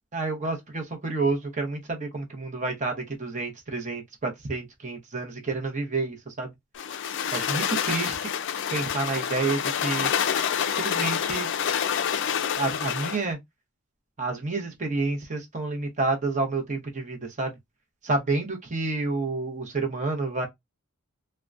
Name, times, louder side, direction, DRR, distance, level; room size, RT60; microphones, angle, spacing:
voice 1, 0.1-6.5 7.3-8.3 8.7-10.1 10.8-11.5 12.6-13.4 14.2-17.5 18.0-20.5, right 3 dB, 35° right, 0.7 m, -29 dB
sound 1, 6.8-13.2, left 8 dB, 55° left, 0.3 m, -27 dB
3.5 x 2.1 x 2.4 m
head